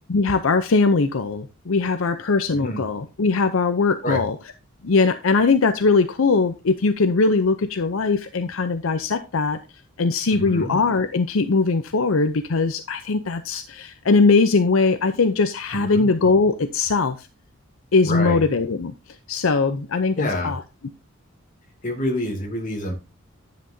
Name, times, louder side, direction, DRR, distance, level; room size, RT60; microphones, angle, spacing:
voice 1, 0.0-4.4 4.8-9.6 10.0-17.3 17.9-18.9 19.3-20.6, left 4 dB, 75° left, 10 dB, 0.6 m, -20 dB
voice 2, 10.3-10.7 15.7-16.1 18.0-18.4 20.2-20.5 21.8-22.9, left 1 dB, 40° left, 2 dB, 2.5 m, -27 dB
10.0 x 7.8 x 2.7 m, 0.26 s
head